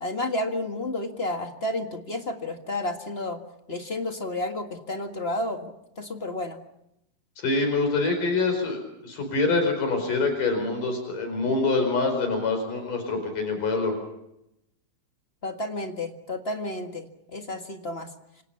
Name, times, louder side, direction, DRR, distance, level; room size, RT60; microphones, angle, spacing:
voice 1, 0.0-3.4 3.7-6.6 15.4-18.1, left 1 dB, 30° left, 5 dB, 1.2 m, -31 dB
voice 2, 7.4-13.9, left 3 dB, 70° left, 5 dB, 6.2 m, -25 dB
27.0 x 27.0 x 5.8 m, 0.84 s
omnidirectional pair, 3.9 m